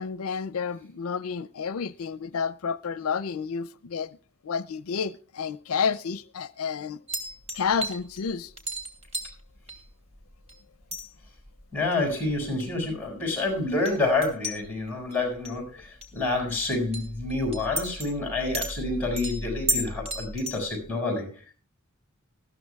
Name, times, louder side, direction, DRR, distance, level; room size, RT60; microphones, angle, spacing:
voice 1, 0.0-4.2 4.4-7.0 7.5-8.5, left 6 dB, 90° left, 0.5 m, -30 dB
sound 1, 7.1-10.6 10.8-20.9, right 1 dB, 30° right, 3.0 m, -35 dB
voice 2, 11.7-21.3, left 2 dB, 10° left, 6.6 m, -28 dB
20.0 x 14.5 x 2.3 m
head